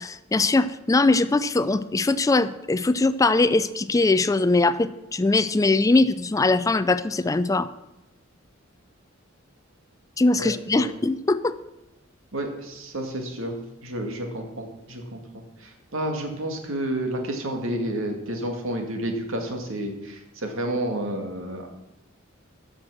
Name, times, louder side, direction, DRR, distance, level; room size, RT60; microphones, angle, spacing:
voice 1, 0.0-7.7 10.2-11.6, left 3 dB, 15° left, 14 dB, 0.4 m, -21 dB
voice 2, 10.4-10.9 12.3-21.7, right 1 dB, 85° right, 3 dB, 2.1 m, -30 dB
14.0 x 6.1 x 6.3 m, 0.94 s
head